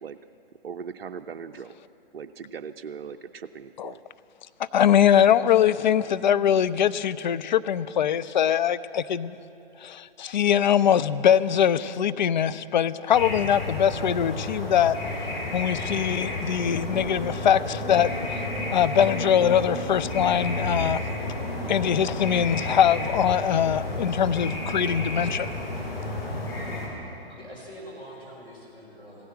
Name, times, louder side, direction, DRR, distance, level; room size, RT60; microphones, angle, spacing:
voice 1, 0.6-1.7 2.1-4.0, right 6 dB, 70° right, 8 dB, 0.5 m, -39 dB
voice 2, 4.6-9.4 9.8-15.0 15.5-18.1 18.7-21.0 21.7-25.5, left 9 dB, 50° left, 14 dB, 0.5 m, -22 dB
sound 1, 13.1-26.9, left 1 dB, 70° left, 4.0 m, -31 dB
voice 3, 27.3-29.3, equal, 15° left, -5 dB, 4.1 m, -44 dB
15.5 x 10.0 x 7.4 m, 2.8 s
figure-of-eight pair, 120°, 30 cm